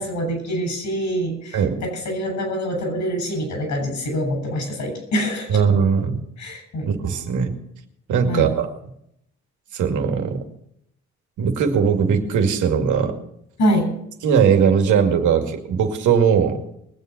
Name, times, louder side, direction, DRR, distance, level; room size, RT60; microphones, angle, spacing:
voice 1, 0.0-5.6 6.4-6.9 8.3-8.5 13.6-13.9, equal, 70° left, 4 dB, 7.2 m, -25 dB
voice 2, 5.5-6.2 6.9-7.6 8.1-8.7 9.7-10.4 11.4-13.1 14.2-16.6, right 7 dB, 80° right, 4 dB, 2.3 m, -19 dB
21.0 x 8.2 x 6.0 m, 0.74 s
cardioid pair, 90°, 30 cm